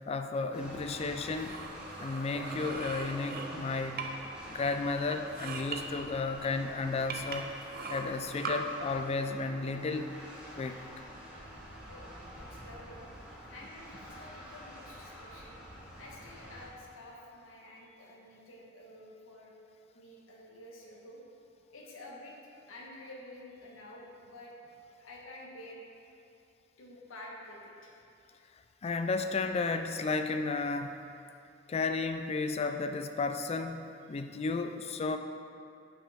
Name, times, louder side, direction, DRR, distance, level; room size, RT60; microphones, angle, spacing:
voice 1, 0.1-1.6 2.0-4.1 4.5-7.5 7.9-10.1 10.6-10.8 28.8-31.0 31.7-35.2, left 3 dB, 30° left, 7 dB, 0.3 m, -33 dB
sound 1, 0.5-16.7, equal, 5° right, 1.3 m, -47 dB
sound 2, 1.2-4.3 4.6-5.8 6.4-6.5 7.1-8.6, right 5 dB, 50° right, 0.6 m, -41 dB
voice 2, 12.4-13.0 13.4-15.6 16.0-19.5 19.9-21.2 21.7-22.3 22.7-24.5 25.0-25.8 26.8-27.9 34.1-34.2, left 1 dB, 75° left, -3 dB, 1.2 m, -50 dB
8.6 x 5.5 x 3.5 m, 2.6 s
head